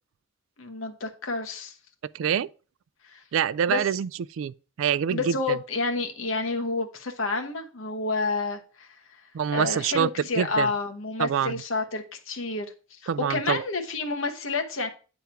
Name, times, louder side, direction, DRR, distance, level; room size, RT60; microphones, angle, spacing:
voice 1, 0.6-1.8 3.1-3.2 3.7-3.8 5.1-8.9 9.5-14.9, left 3 dB, 80° left, 1.2 m, -29 dB
voice 2, 2.1-2.5 3.3-4.1 4.4-5.6 9.3-10.1 10.4-10.7 11.2-11.6 13.1-13.6, right 8 dB, 75° right, 0.3 m, -25 dB
8.8 x 3.5 x 5.7 m
head